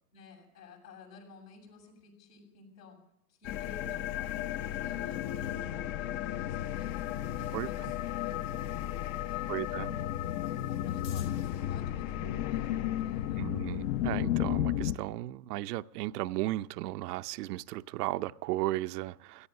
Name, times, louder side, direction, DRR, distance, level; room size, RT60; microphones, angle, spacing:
voice 1, 0.1-3.0 3.3-7.0 7.3-8.4 9.2-13.5, left 3 dB, 80° left, 7.2 m, -53 dB
sound 1, 3.4-15.0, left 12 dB, 45° left, 0.8 m, -33 dB
voice 2, 9.5-9.9 13.4-19.5, right 17 dB, 70° right, 0.7 m, -35 dB
17.0 x 14.0 x 5.4 m
hypercardioid pair, 115°, 49 cm